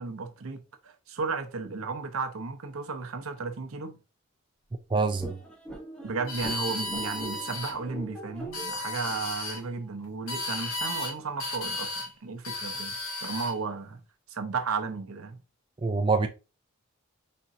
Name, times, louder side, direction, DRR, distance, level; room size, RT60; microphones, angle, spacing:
voice 1, 0.0-4.0 6.0-14.0 14.3-15.4, right 4 dB, 80° right, 0.8 m, -34 dB
voice 2, 4.9-5.3 15.8-16.3, right 4 dB, 20° right, 0.4 m, -25 dB
sound 1, 5.2-10.3, right 1 dB, 5° left, 0.9 m, -43 dB
sound 2, 6.3-7.7 8.4-9.6 10.3-11.1 11.4-12.1 12.4-13.6, left 2 dB, 85° left, 1.1 m, -34 dB
4.3 x 3.7 x 2.7 m
head